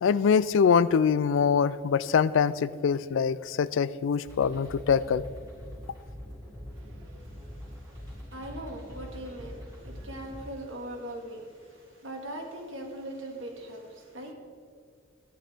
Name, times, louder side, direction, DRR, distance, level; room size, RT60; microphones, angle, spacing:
voice 1, 0.0-5.2, left 6 dB, 65° left, 17 dB, 0.3 m, -24 dB
sound 1, 4.2-10.4, equal, 15° right, 2.7 m, -43 dB
voice 2, 6.7-14.3, right 1 dB, 75° right, 1 dB, 1.9 m, -41 dB
13.5 x 10.0 x 3.5 m, 2.1 s
head